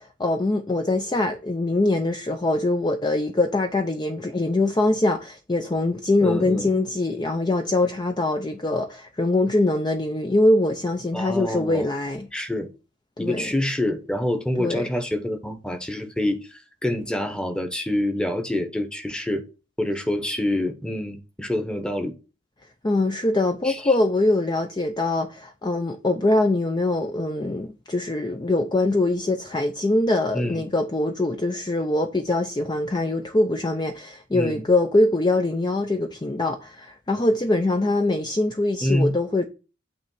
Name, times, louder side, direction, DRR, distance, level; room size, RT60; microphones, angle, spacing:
voice 1, 0.0-12.3 13.2-13.5 14.6-14.8 22.8-39.5, left 2 dB, 25° left, 0.5 m, -23 dB
voice 2, 6.2-6.7 11.1-11.9 12.3-12.7 13.2-19.4 19.8-22.1 23.6-23.9 30.3-30.6 34.3-34.6 38.8-39.2, left 1 dB, 5° left, 1.0 m, -26 dB
8.8 x 3.2 x 5.5 m
head